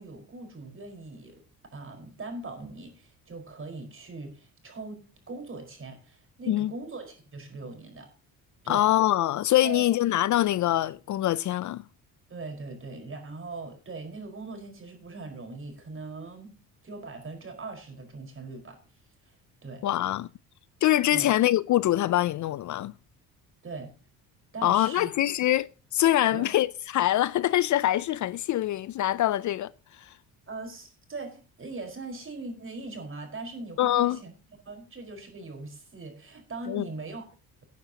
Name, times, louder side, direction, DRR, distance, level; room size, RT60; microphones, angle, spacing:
voice 1, 0.0-1.4 1.7-8.1 8.6-8.9 9.6-9.9 12.3-16.5 16.8-18.8 19.6-19.9 21.1-21.3 23.6-23.9 24.5-25.1 26.3-26.5 30.5-34.3 34.6-37.2, right 3 dB, 35° right, 4.8 m, -40 dB
voice 2, 8.7-11.8 19.8-20.3 20.8-22.9 24.6-25.7 25.9-29.7 30.0-30.1 33.8-34.2 36.7-36.8, left 13 dB, 55° left, 0.5 m, -24 dB
18.0 x 9.4 x 2.9 m
cardioid pair, 90°, 37 cm